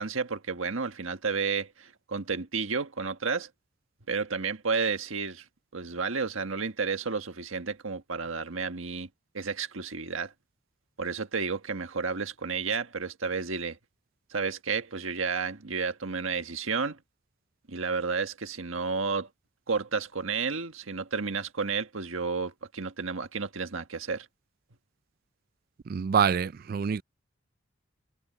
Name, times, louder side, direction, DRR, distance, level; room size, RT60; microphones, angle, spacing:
voice 1, 0.0-3.5 4.1-5.4 5.7-9.1 9.3-10.3 11.0-13.8 14.3-17.0 17.7-19.3 19.7-24.3, right 5 dB, 80° right, 1.6 m, -31 dB
voice 2, 25.9-27.0, right 7 dB, 45° right, 0.3 m, -26 dB
head